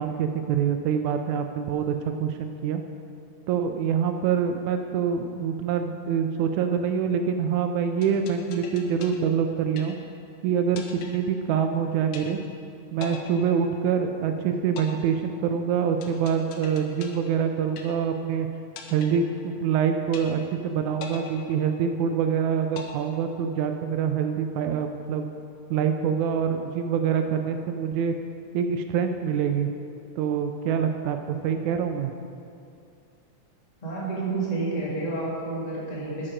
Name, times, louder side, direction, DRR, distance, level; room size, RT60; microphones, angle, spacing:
voice 1, 0.0-2.8 3.5-10.0 10.4-10.8 11.1-12.4 12.9-18.5 18.9-25.3 25.7-28.2 28.5-29.7 30.2-32.1, right 7 dB, 80° right, 6 dB, 1.8 m, -25 dB
sound 1, 8.0-10.3 10.8-11.8 12.1-12.7 13.0-14.3 14.8-18.3 18.8-19.8 20.1-20.7 21.0-22.3 22.8-23.8, left 6 dB, 75° left, 2.1 m, -43 dB
voice 2, 33.8-36.3, right 3 dB, 15° left, -6 dB, 1.4 m, -29 dB
8.7 x 7.5 x 5.0 m, 2.5 s
omnidirectional pair, 3.6 m